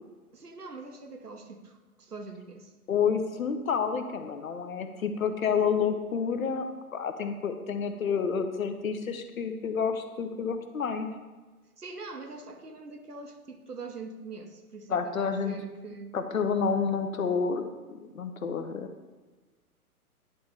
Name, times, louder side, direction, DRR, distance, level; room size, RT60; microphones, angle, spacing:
voice 1, 0.3-2.7 11.8-16.2, right 3 dB, 85° right, 6 dB, 1.0 m, -43 dB
voice 2, 2.9-6.6 6.9-11.1 14.9-15.6 16.1-17.6 18.0-18.9, left 6 dB, 65° left, 8 dB, 0.8 m, -29 dB
10.5 x 4.0 x 3.4 m, 1.3 s
figure-of-eight pair, 125°, 45 cm